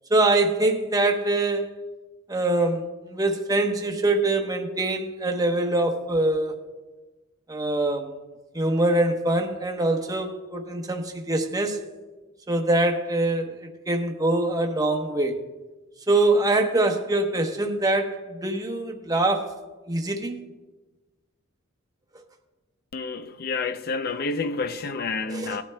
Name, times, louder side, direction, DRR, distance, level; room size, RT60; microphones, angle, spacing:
voice 1, 0.1-1.7 2.3-6.6 7.5-8.2 8.5-11.8 12.5-15.4 16.1-19.5 19.9-20.4 25.3-25.5, right 2 dB, 20° right, 0.9 m, -24 dB
voice 2, 22.9-25.6, left 4 dB, 50° left, 0.5 m, -29 dB
18.5 x 10.5 x 2.2 m
head